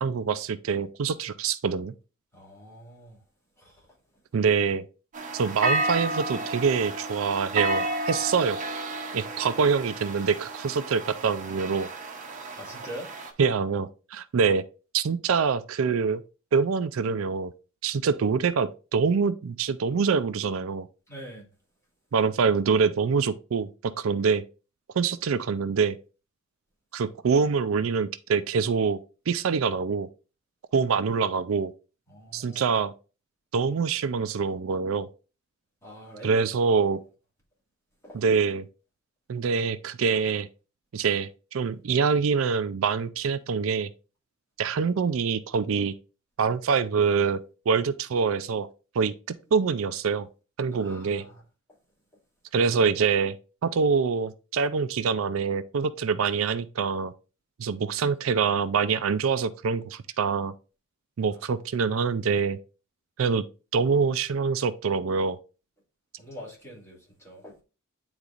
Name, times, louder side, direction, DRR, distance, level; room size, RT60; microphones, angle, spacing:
voice 1, 0.0-1.9 4.3-4.8 5.3-8.6 9.1-11.9 13.4-14.6 14.9-16.2 16.5-17.5 17.8-20.9 22.1-24.4 24.9-26.0 26.9-29.0 29.3-30.1 30.7-31.7 32.3-32.9 33.5-35.1 36.2-37.0 38.1-38.7 39.3-40.5 40.9-43.9 44.6-45.9 46.4-47.4 47.7-48.7 48.9-49.1 49.5-50.3 50.6-51.2 52.5-53.3 53.6-57.1 57.6-60.5 61.2-62.6 63.2-63.4 63.7-65.4, right 5 dB, 70° right, 0.4 m, -25 dB
voice 2, 2.3-3.2 3.6-3.8 12.6-13.1 21.1-21.5 32.1-32.6 35.8-36.4 38.0-38.2 50.8-51.4 66.2-67.6, equal, 15° left, 2.4 m, -43 dB
sound 1, 5.1-13.3, right 2 dB, 40° right, 0.9 m, -32 dB
9.7 x 3.9 x 2.4 m
head